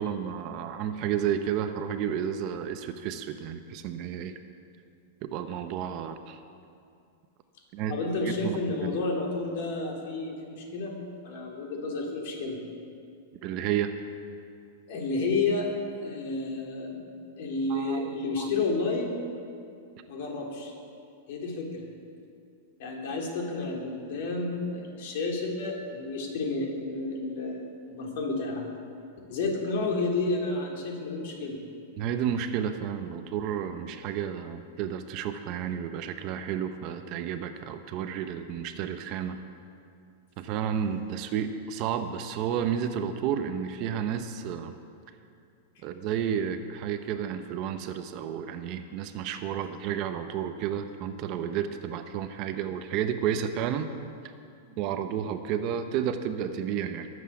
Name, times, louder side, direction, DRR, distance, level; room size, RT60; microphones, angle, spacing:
voice 1, 0.0-4.4 5.2-6.4 7.7-7.9 8.2-8.6 13.4-13.9 17.7-18.1 18.4-18.5 32.0-39.4 40.4-44.7 45.8-53.9 54.8-57.1, right 8 dB, 35° right, 8 dB, 0.8 m, -31 dB
voice 2, 7.9-11.0 11.2-12.6 14.9-17.1 17.4-19.3 20.1-20.7 21.3-21.8 22.8-28.6 29.3-31.6 54.7-54.8, left 3 dB, 55° left, 0 dB, 3.5 m, -31 dB
21.5 x 8.1 x 7.2 m, 2.4 s
supercardioid pair, 165°, 0 cm